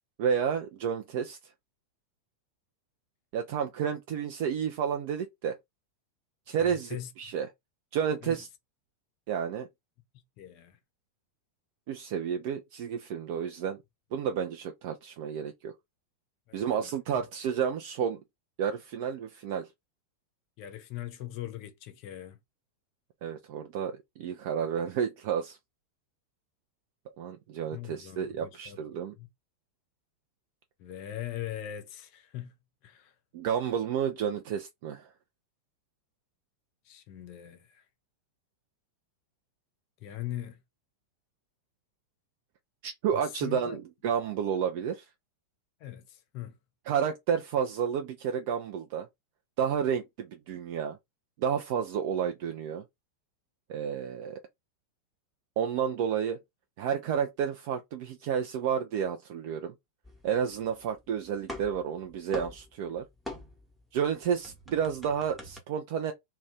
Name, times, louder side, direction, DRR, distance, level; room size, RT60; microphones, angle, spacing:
voice 1, 0.2-1.4 3.3-5.6 6.5-7.5 7.9-8.5 9.3-9.7 11.9-13.8 14.1-15.7 16.5-18.2 18.6-19.7 23.2-25.6 27.2-29.1 33.3-35.1 42.8-45.1 46.9-49.1 49.6-51.0 51.4-52.8 53.7-54.4 55.6-56.4 56.8-59.7 60.2-63.1 63.9-66.1, right 8 dB, 50° right, 0.4 m, -31 dB
voice 2, 6.6-7.1 8.2-8.4 10.4-10.8 16.5-16.9 20.6-22.4 27.7-29.3 30.8-32.5 32.8-33.1 36.8-37.8 40.0-40.6 43.1-43.8 45.8-46.6, left 12 dB, 45° left, 0.6 m, -41 dB
sound 1, 60.0-61.0 61.2-63.8 64.1-65.6, left 1 dB, ahead, 0.9 m, -43 dB
2.5 x 2.2 x 3.4 m
figure-of-eight pair, 90°, 0 cm